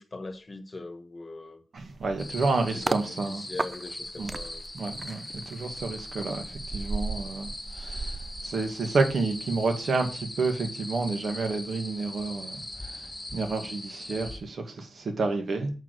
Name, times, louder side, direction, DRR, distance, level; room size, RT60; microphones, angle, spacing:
voice 1, 0.0-1.6 2.6-4.6, left 2 dB, 35° left, 1.6 m, -41 dB
voice 2, 1.7-3.4 4.2-4.3 4.7-5.2 5.5-8.1 8.4-13.0 13.3-15.7, right 3 dB, 70° right, 1.6 m, -30 dB
sound 1, 1.8-3.1 3.6-9.2 9.5-9.7, right 3 dB, 40° right, 0.5 m, -36 dB
sound 2, 2.2-14.4, left 1 dB, 20° left, 2.2 m, -40 dB
7.2 x 4.1 x 6.3 m
cardioid pair, 65°, 0 cm